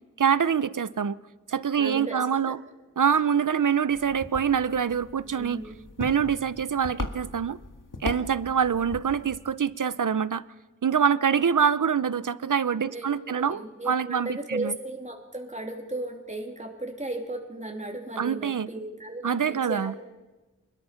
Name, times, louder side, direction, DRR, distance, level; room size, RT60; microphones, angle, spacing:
voice 1, 0.2-1.2 1.5-2.6 3.0-5.6 6.0-7.6 8.0-10.4 10.8-14.8 18.2-18.7 19.2-19.9, right 7 dB, 75° right, 0.7 m, -25 dB
voice 2, 1.8-2.6 5.2-5.7 12.8-20.1, right 2 dB, 20° right, 2.8 m, -36 dB
sound 1, 3.9-9.5, left 2 dB, 75° left, 2.0 m, -39 dB
25.0 x 21.0 x 5.8 m
wide cardioid pair, 50°, 32 cm